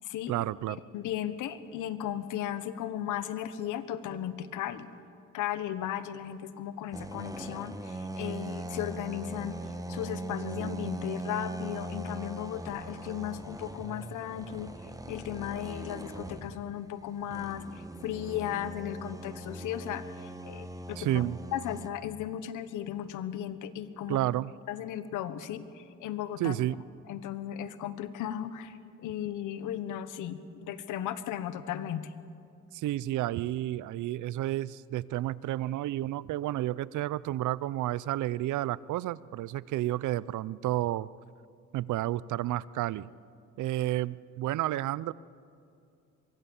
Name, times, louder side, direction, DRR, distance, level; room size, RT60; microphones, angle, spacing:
voice 1, 0.3-0.8 21.0-21.4 24.1-24.5 26.4-26.8 32.7-41.1 41.7-43.1 43.6-45.1, right 14 dB, 80° right, 20 dB, 0.6 m, -31 dB
voice 2, 0.9-4.9 5.3-9.6 9.9-14.7 15.1-17.6 18.0-21.2 21.5-24.2 24.7-26.5 27.1-32.1, left 11 dB, 90° left, 13 dB, 1.3 m, -36 dB
sound 1, 6.9-16.7 17.2-21.9, right 2 dB, 10° right, 1.5 m, -40 dB
24.0 x 22.5 x 7.2 m, 2.5 s
cardioid pair, 90°, 30 cm